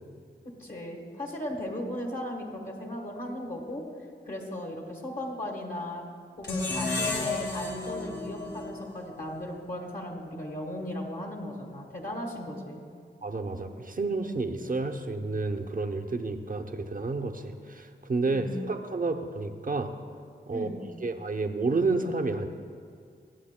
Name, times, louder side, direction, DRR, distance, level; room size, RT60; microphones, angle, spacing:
voice 1, 0.6-3.8 4.2-6.0 6.4-12.8 18.2-18.7 20.5-20.8, left 1 dB, 45° left, 0 dB, 1.4 m, -37 dB
sound 1, 6.4-9.6, left 3 dB, 60° left, 1.6 m, -32 dB
voice 2, 13.2-19.9 20.5-20.7 21.0-22.5, right 3 dB, 45° right, 6 dB, 0.7 m, -30 dB
21.5 x 7.9 x 2.2 m, 2.2 s
cardioid pair, 50°, 20 cm